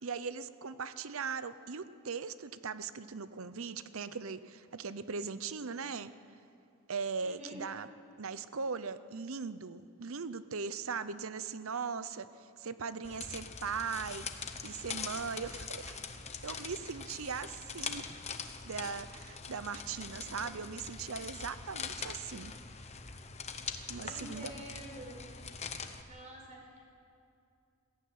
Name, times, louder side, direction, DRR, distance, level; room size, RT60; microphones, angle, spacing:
voice 1, 0.0-6.1 6.9-7.9 8.2-14.3 14.6-16.0 16.4-18.0 18.6-22.5 23.9-24.5, right 5 dB, 65° right, 14 dB, 0.8 m, -39 dB
voice 2, 7.2-7.7 20.0-20.5 24.0-25.2 26.0-26.9, right 1 dB, 35° right, 0 dB, 4.6 m, -49 dB
sound 1, 13.0-26.0, left 5 dB, 30° left, 1.1 m, -43 dB
20.5 x 15.0 x 9.5 m, 2.5 s
head